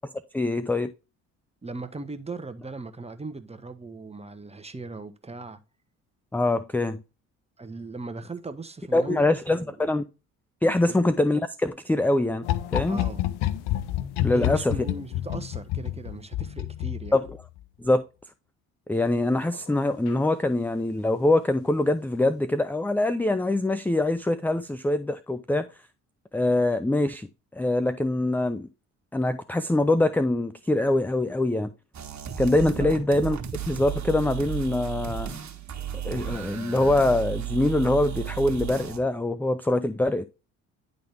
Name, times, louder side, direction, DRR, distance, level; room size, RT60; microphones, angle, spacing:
voice 1, 0.3-0.9 6.3-7.0 8.9-10.1 10.6-12.5 12.7-13.0 14.2-14.7 17.1-17.2 17.8-18.0 18.9-25.7 26.3-27.3 27.5-28.7 29.1-31.7 32.4-33.4 33.7-35.4 36.0-40.2, left 2 dB, 5° left, 0.5 m, -24 dB
voice 2, 1.6-5.6 7.6-9.7 10.8-11.1 12.9-13.3 14.3-17.2 32.8-33.0, right 3 dB, 15° right, 1.1 m, -38 dB
sound 1, 12.4-17.6 19.4-19.7 20.1-20.2, left 13 dB, 75° left, 0.7 m, -29 dB
sound 2, 31.9-39.0, right 10 dB, 45° right, 1.6 m, -34 dB
10.5 x 3.9 x 3.4 m
hypercardioid pair, 55°, 38 cm